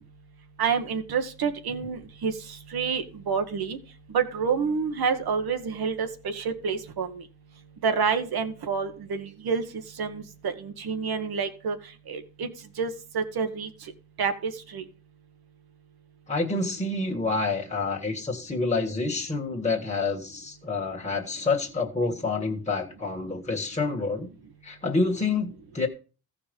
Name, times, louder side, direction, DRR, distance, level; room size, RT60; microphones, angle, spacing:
voice 1, 0.6-2.3 2.7-3.8 4.1-7.2 7.8-9.6 10.0-11.8 12.1-12.5 12.8-13.7 14.2-14.8, right 6 dB, 75° right, 1.3 m, -28 dB
voice 2, 16.3-24.3 24.6-25.9, left 3 dB, 20° left, 1.7 m, -28 dB
14.5 x 5.0 x 5.3 m
cardioid pair, 60°, 37 cm